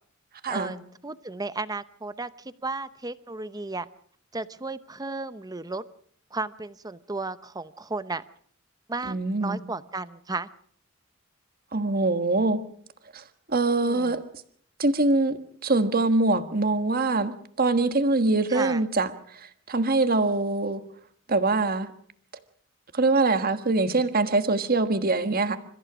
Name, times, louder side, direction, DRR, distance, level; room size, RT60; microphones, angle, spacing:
voice 1, 0.5-3.9 4.3-5.8 6.3-8.2 8.9-10.5 13.8-14.2 18.5-18.8, right 3 dB, 20° right, 14 dB, 0.8 m, -34 dB
voice 2, 9.1-9.6 11.7-12.6 13.1-14.2 14.8-17.3 17.6-20.8 21.3-21.9 22.9-25.6, right 3 dB, 45° right, 9 dB, 1.5 m, -24 dB
29.0 x 14.5 x 6.2 m, 0.63 s
head